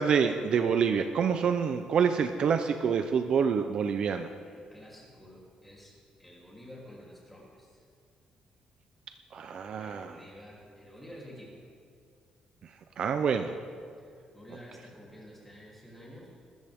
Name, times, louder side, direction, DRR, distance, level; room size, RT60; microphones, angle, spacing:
voice 1, 0.0-4.3 9.3-10.2 13.0-13.5, right 6 dB, 45° right, 7 dB, 0.6 m, -27 dB
voice 2, 4.4-7.8 9.8-11.6 13.3-13.6 14.0-16.3, equal, 5° left, -5 dB, 3.3 m, -50 dB
21.5 x 13.5 x 3.6 m, 2.2 s
cardioid pair, 175°, 2 cm